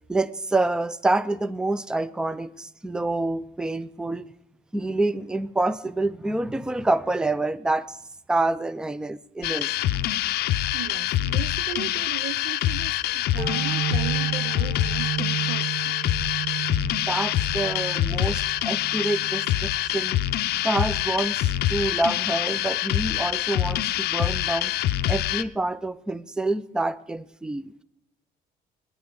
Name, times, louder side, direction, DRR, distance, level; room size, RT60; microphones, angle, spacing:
voice 1, 0.1-4.3 4.7-8.0 8.3-9.7 13.4-13.5 17.1-20.2 20.6-24.7 25.0-27.7, right 2 dB, 5° right, 0.4 m, -27 dB
sound 1, 9.4-25.4, left 13 dB, 70° left, 0.5 m, -25 dB
voice 2, 10.7-16.0, right 12 dB, 80° right, 0.5 m, -37 dB
sound 2, 13.4-20.7, right 9 dB, 55° right, 1.5 m, -33 dB
19.0 x 9.6 x 3.8 m
cardioid pair, 110°, 17 cm